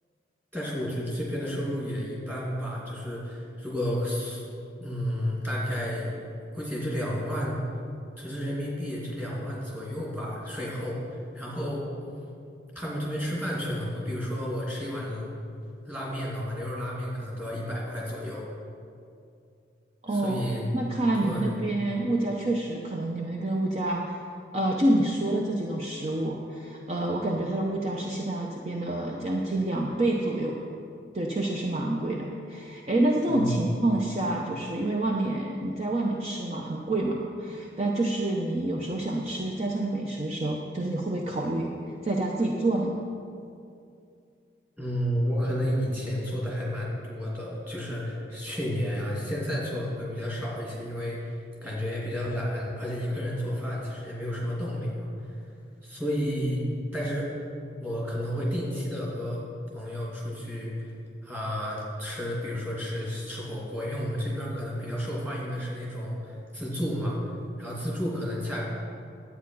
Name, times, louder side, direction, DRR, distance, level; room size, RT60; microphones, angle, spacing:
voice 1, 0.5-4.4 4.8-6.2 6.5-7.6 8.2-11.9 12.7-15.3 15.9-18.5 20.1-20.6 21.2-21.5 33.3-33.5 44.8-55.1 55.8-56.7 56.9-57.3 57.8-59.5 59.7-60.9 61.2-67.2 67.6-68.7, equal, 10° right, -5 dB, 2.6 m, -31 dB
voice 2, 20.0-20.4 20.7-24.2 24.5-30.6 31.1-42.9, right 1 dB, 35° right, -1 dB, 0.7 m, -28 dB
10.5 x 8.6 x 5.5 m, 2.5 s
head